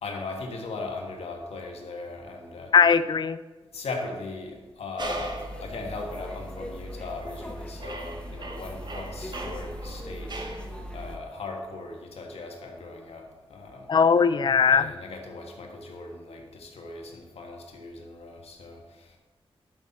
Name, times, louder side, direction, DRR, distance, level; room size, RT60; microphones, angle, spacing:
voice 1, 0.0-2.9 3.7-10.5 10.9-13.9 14.7-19.2, left 3 dB, 85° left, 2 dB, 1.5 m, -38 dB
voice 2, 2.7-3.4 13.9-14.9, left 6 dB, 50° left, 15 dB, 0.4 m, -19 dB
sound 1, 5.0-11.2, equal, 10° left, 1.1 m, -39 dB
sound 2, 5.0-5.6 6.3-6.5 7.1-7.5 7.8-10.7, right 2 dB, 45° right, 1.1 m, -39 dB
11.5 x 6.3 x 4.2 m, 1.3 s
wide cardioid pair, 95°, 10 cm